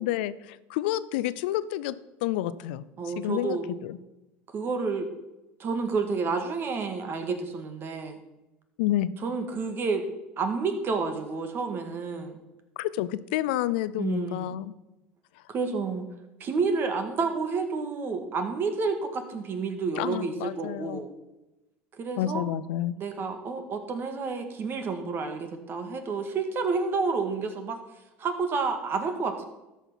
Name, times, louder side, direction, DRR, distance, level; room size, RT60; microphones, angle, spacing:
voice 1, 0.0-4.0 8.8-9.1 12.8-14.7 20.0-21.0 22.2-23.0, left 13 dB, 80° left, 17 dB, 0.5 m, -29 dB
voice 2, 3.0-3.7 4.5-5.1 5.6-8.2 9.2-10.0 10.4-12.4 14.0-14.5 15.5-16.0 16.4-21.1 22.0-22.4 23.0-27.8 28.2-29.5, right 4 dB, 45° right, 7 dB, 1.8 m, -30 dB
13.5 x 5.7 x 5.7 m, 1.0 s
supercardioid pair, 90°, 5 cm